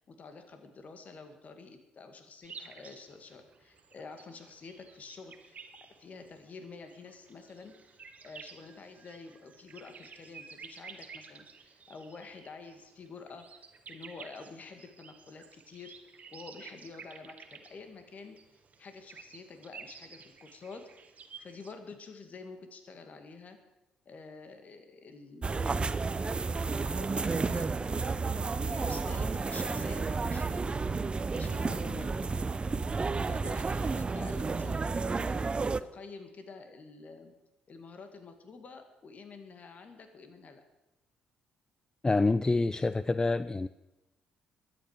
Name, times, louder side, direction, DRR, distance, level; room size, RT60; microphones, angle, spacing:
voice 1, 0.0-5.6 6.0-15.9 16.3-18.4 18.8-21.1 21.4-23.6 24.1-25.9 26.6-27.7 28.0-28.2 28.6-30.9 31.3-32.1 33.2-34.8 35.1-35.4 35.8-37.3 37.7-40.6, left 4 dB, 45° left, 6 dB, 2.3 m, -48 dB
sound 1, 2.4-21.7, right 5 dB, 45° right, 1.6 m, -52 dB
sound 2, 25.4-35.8, right 4 dB, 30° right, 0.7 m, -31 dB
voice 2, 42.0-43.7, left 3 dB, 20° left, 15 dB, 0.4 m, -27 dB
22.0 x 9.3 x 5.1 m, 0.97 s
hypercardioid pair, 50°, 4 cm